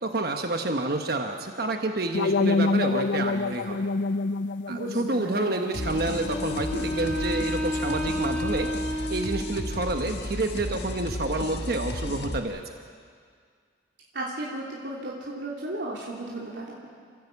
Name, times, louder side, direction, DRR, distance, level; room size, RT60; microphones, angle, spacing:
voice 1, 0.0-3.8 4.7-8.7 9.1-12.8, right 2 dB, 55° right, 4 dB, 1.2 m, -29 dB
sound 1, 2.1-7.1, left 3 dB, 85° left, 0.5 m, -28 dB
voice 2, 4.7-5.6 14.1-16.9, right 2 dB, 75° right, -5 dB, 2.9 m, -35 dB
sound 2, 5.7-12.4, left 1 dB, 65° left, 1.6 m, -34 dB
Wind instrument woodwind instrument, 5.7-9.9, left 1 dB, 5° left, 3.0 m, -32 dB
28.5 x 15.5 x 8.3 m, 2.1 s
head